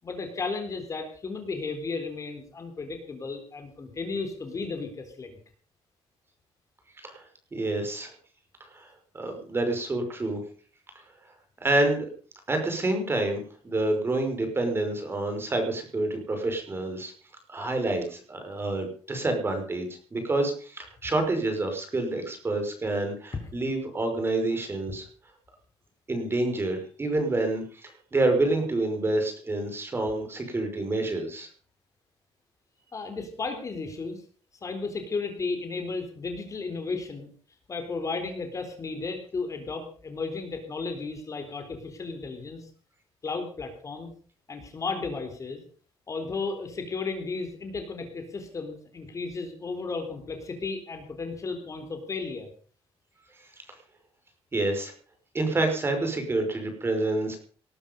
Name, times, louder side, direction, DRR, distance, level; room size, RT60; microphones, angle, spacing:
voice 1, 0.0-5.4 23.4-23.5 32.9-34.2 34.6-37.3 37.7-42.7 43.2-44.1 44.5-45.6 46.1-52.5, left 4 dB, 30° left, 6 dB, 4.0 m, -34 dB
voice 2, 7.5-8.1 8.7-8.9 9.1-10.4 11.6-12.1 12.5-17.1 17.5-25.0 26.1-31.5 54.5-54.9 55.3-57.4, right 2 dB, 25° right, 5 dB, 5.6 m, -28 dB
19.5 x 12.5 x 5.4 m, 0.43 s
cardioid pair, 125°, 10 cm